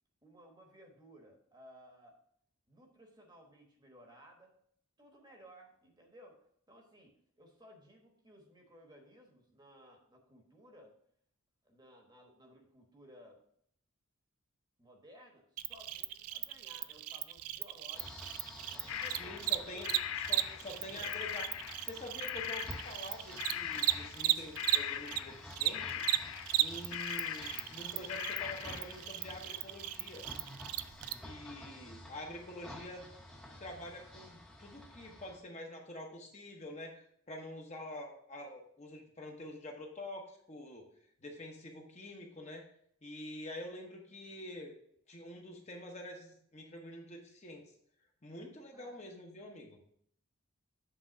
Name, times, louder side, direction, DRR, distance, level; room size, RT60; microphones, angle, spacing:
voice 1, 0.2-2.2 2.7-4.6 5.0-11.0 11.6-13.4 14.8-18.1 18.7-19.9 20.3-21.1 31.7-32.0 48.7-49.0, equal, 20° right, 2 dB, 1.1 m, -58 dB
Cricket, 15.6-25.2 25.5-31.1, right 15 dB, 90° right, 0.4 m, -35 dB
sound 1, 17.9-35.4, left 1 dB, 5° left, 0.8 m, -51 dB
sound 2, 18.9-21.9 22.2-23.1 23.4-24.3 24.6-29.0, left 11 dB, 70° left, 0.4 m, -41 dB
voice 2, 19.2-19.9 20.3-21.5 21.8-26.1 26.6-30.3 31.2-33.1 33.6-40.9 41.2-42.7 43.0-44.7 45.1-47.7 48.2-49.8, left 1 dB, 30° left, 1 dB, 0.9 m, -47 dB
7.8 x 3.6 x 6.0 m, 0.66 s
head